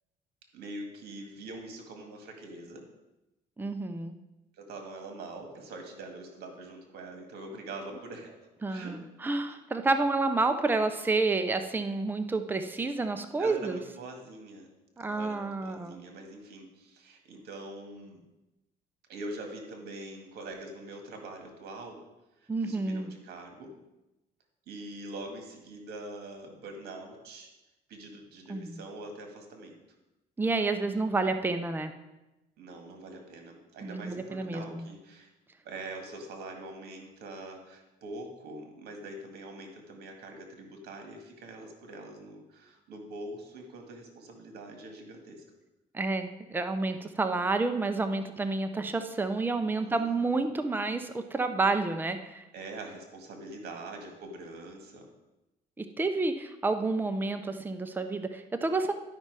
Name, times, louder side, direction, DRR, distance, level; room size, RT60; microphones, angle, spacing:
voice 1, 0.5-2.9 4.6-9.0 9.4-9.5 13.4-14.7 15.1-18.2 19.1-22.0 22.4-23.7 24.7-27.5 27.9-29.8 32.6-35.3 35.6-45.4 49.8-50.4 52.5-55.1, right 2 dB, 75° right, 3 dB, 1.9 m, -44 dB
voice 2, 3.6-4.2 8.6-13.8 15.0-16.0 22.5-23.1 28.5-28.8 30.4-31.9 33.8-34.8 45.9-52.4 55.8-58.9, right 3 dB, 10° right, 7 dB, 0.6 m, -29 dB
11.5 x 5.5 x 4.7 m, 0.98 s
cardioid pair, 110°, 17 cm